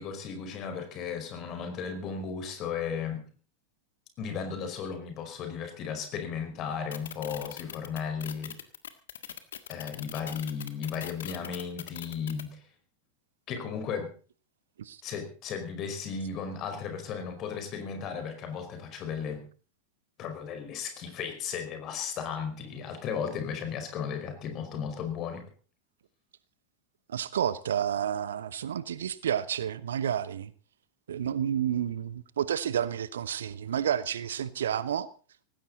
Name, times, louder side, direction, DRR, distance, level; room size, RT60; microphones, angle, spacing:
voice 1, 0.0-3.2 4.2-8.5 9.7-12.6 13.5-14.1 15.0-19.4 20.2-25.5, left 6 dB, 35° left, 6 dB, 5.0 m, -35 dB
sound 1, 6.9-12.4, left 9 dB, 65° left, 1.6 m, -40 dB
voice 2, 27.1-30.5 31.1-35.1, right 9 dB, 65° right, 18 dB, 0.9 m, -30 dB
18.5 x 16.5 x 4.1 m, 0.38 s
figure-of-eight pair, 90°, 0 cm